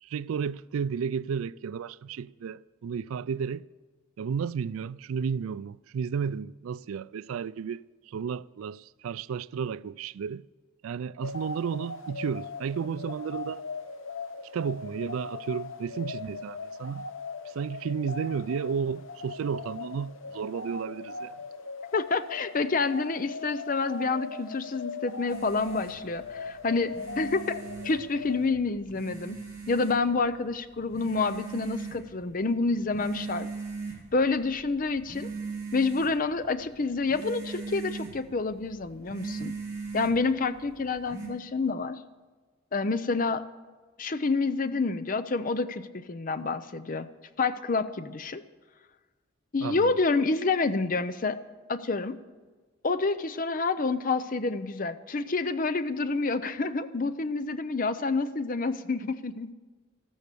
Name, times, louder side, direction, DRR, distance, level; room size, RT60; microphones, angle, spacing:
voice 1, 0.0-3.6 4.2-10.4 10.8-13.6 14.5-17.0 17.5-21.3 49.6-49.9, right 6 dB, 85° right, 0.3 m, -33 dB
sound 1, 11.2-28.5, left 4 dB, 75° left, 0.8 m, -40 dB
voice 2, 21.9-29.4 29.7-33.5 34.1-35.3 35.7-39.5 39.9-42.0 42.7-43.4 44.0-47.1 47.4-48.4 49.5-51.4 51.7-52.2 52.8-59.5, left 3 dB, 40° left, 0.6 m, -28 dB
sound 2, 25.3-41.3, right 4 dB, 15° right, 3.3 m, -41 dB
13.5 x 13.0 x 6.8 m
head